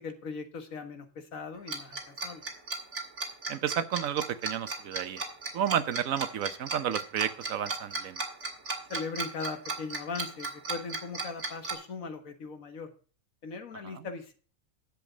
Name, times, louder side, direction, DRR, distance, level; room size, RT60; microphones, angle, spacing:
voice 1, 0.0-2.4 8.9-12.9 13.4-14.4, left 4 dB, 85° left, 7 dB, 1.9 m, -39 dB
Tick-tock, 1.7-11.7, right 3 dB, 60° right, 2.6 m, -35 dB
voice 2, 3.5-5.2 5.5-8.2 13.8-14.1, right 9 dB, 85° right, 11 dB, 1.2 m, -31 dB
10.5 x 7.4 x 5.0 m, 0.40 s
omnidirectional pair, 1.4 m